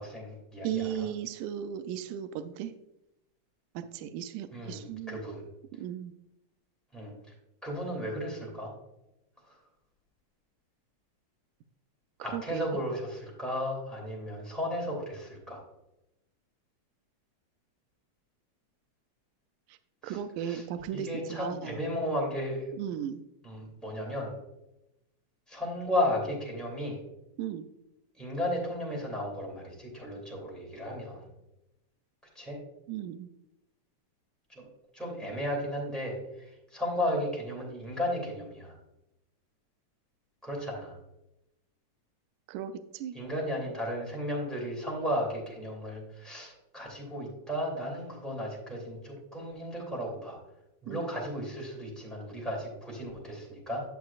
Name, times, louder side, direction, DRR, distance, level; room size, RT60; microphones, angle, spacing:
voice 1, 0.0-1.1 4.5-5.4 6.9-7.1 7.6-8.7 9.5-9.6 12.2-15.6 20.0-20.6 20.9-22.7 23.4-24.3 25.5-27.0 28.2-31.3 32.3-32.6 34.5-34.7 34.9-38.7 40.4-41.0 43.1-50.4 50.8-53.8, equal, ahead, -2 dB, 2.1 m, -34 dB
voice 2, 0.6-2.7 3.8-5.2 5.8-6.1 12.2-12.7 19.7-19.8 20.0-21.8 22.7-23.3 27.4-27.7 32.9-33.3 42.5-43.2 50.9-51.1, right 9 dB, 80° right, 10 dB, 1.9 m, -36 dB
10.5 x 7.3 x 2.4 m, 0.90 s
omnidirectional pair, 3.6 m